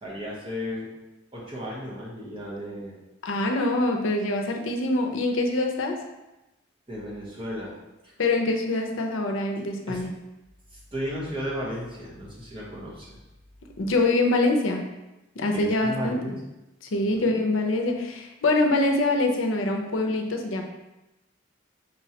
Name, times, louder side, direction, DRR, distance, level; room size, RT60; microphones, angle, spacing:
voice 1, 0.0-0.9 1.3-3.0 6.9-7.7 8.0-8.1 9.9-10.0 10.9-13.2 15.5-16.3 17.0-17.1, equal, 25° right, -6 dB, 1.1 m, -34 dB
voice 2, 3.2-6.0 8.2-10.1 13.8-14.8 15.4-16.4 16.9-20.6, left 2 dB, 85° left, 3 dB, 0.6 m, -24 dB
5.3 x 3.1 x 2.8 m, 0.99 s
head